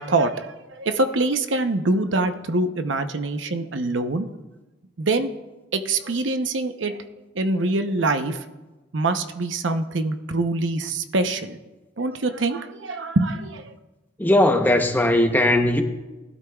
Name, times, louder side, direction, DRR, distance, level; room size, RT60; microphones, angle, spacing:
voice 1, 0.0-4.3 5.0-5.3 5.7-7.0 7.3-8.4 8.9-11.6 12.0-13.7, right 2 dB, 85° right, 7 dB, 0.8 m, -24 dB
voice 2, 14.2-15.8, left 1 dB, 10° left, 5 dB, 0.9 m, -18 dB
19.5 x 12.0 x 2.4 m, 1.1 s
head